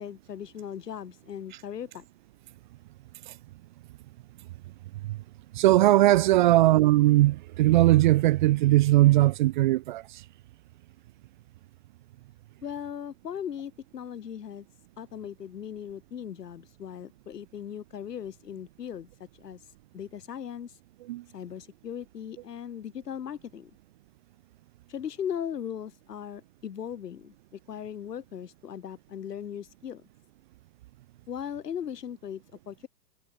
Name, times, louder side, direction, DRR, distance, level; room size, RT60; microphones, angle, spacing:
voice 1, 0.0-2.0 12.6-14.7 15.0-19.1 19.3-19.6 19.9-20.8 21.3-23.7 24.9-30.0 31.3-32.9, left 8 dB, 75° left, 7.1 m, -38 dB
voice 2, 5.5-10.2 21.1-21.2, right 16 dB, 30° right, 0.9 m, -20 dB
hypercardioid pair, 160°, 48 cm